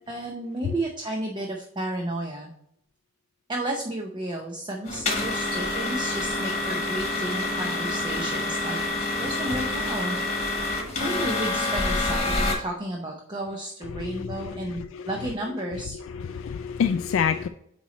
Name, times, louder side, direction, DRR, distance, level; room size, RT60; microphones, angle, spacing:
voice 1, 0.1-2.5 3.5-8.8 9.2-10.2 11.0-16.0, right 1 dB, 25° right, 0 dB, 0.7 m, -32 dB
sound 1, 4.9-12.5, left 2 dB, 35° left, 1.3 m, -27 dB
voice 2, 13.9-15.1 15.7-17.5, left 7 dB, 70° left, 8 dB, 0.3 m, -28 dB
8.7 x 3.1 x 4.0 m, 0.74 s
head